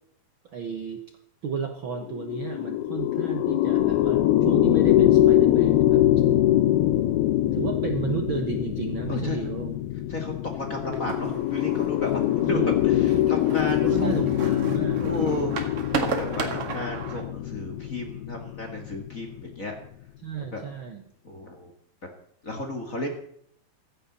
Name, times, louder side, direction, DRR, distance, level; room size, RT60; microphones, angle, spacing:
voice 1, 0.5-1.0 1.4-6.0 7.5-9.7 12.4-12.8 13.8-15.4 20.2-21.1, right 7 dB, 90° right, 5 dB, 1.0 m, -33 dB
sound 1, 2.0-19.5, left 13 dB, 85° left, 2.7 m, -23 dB
voice 2, 9.1-9.4 10.1-14.1 14.6-15.5 16.1-19.7 20.5-20.6 21.2-21.7 22.4-23.1, left 1 dB, 30° left, 3 dB, 1.6 m, -33 dB
sound 2, 10.9-17.2, right 5 dB, 45° right, 2.4 m, -34 dB
16.5 x 14.5 x 4.2 m, 0.67 s
omnidirectional pair, 4.2 m